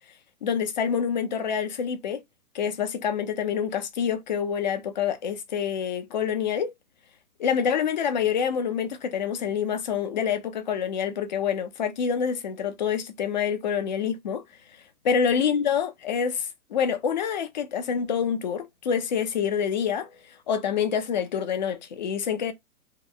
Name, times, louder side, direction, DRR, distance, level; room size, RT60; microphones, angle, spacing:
voice 1, 0.4-2.2 2.5-6.7 7.4-14.4 15.0-20.1 20.5-22.5, left 7 dB, 30° left, 0.4 m, -27 dB
3.1 x 2.0 x 3.7 m
hypercardioid pair, 140°, 45 cm